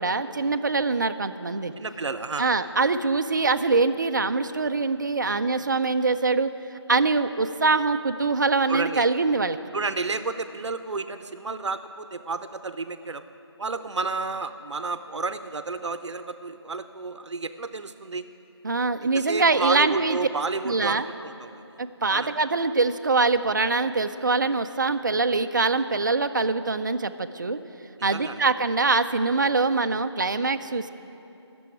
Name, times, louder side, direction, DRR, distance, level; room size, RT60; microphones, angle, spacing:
voice 1, 0.0-1.7 2.4-6.5 6.9-9.6 18.6-20.2 20.6-21.1 21.8-27.6 28.0-30.9, right 3 dB, 45° right, 10 dB, 0.4 m, -23 dB
voice 2, 1.8-2.5 8.7-9.1 9.7-13.2 13.6-18.2 19.1-21.6 22.1-22.3 28.1-28.4, right 3 dB, 85° right, 10 dB, 0.6 m, -31 dB
11.5 x 6.9 x 9.2 m, 2.9 s
figure-of-eight pair, 175°, 15 cm